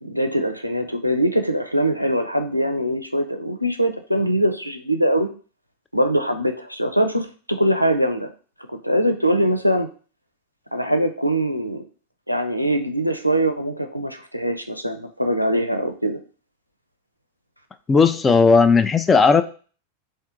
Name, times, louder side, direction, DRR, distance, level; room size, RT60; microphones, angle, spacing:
voice 1, 0.0-5.3 5.9-8.3 8.7-9.9 10.7-11.9 12.3-16.2, right 1 dB, 90° right, 6 dB, 0.4 m, -22 dB
voice 2, 17.9-19.4, left 4 dB, 15° left, 10 dB, 0.3 m, -15 dB
3.5 x 2.6 x 3.6 m, 0.39 s
figure-of-eight pair, 90°, 0 cm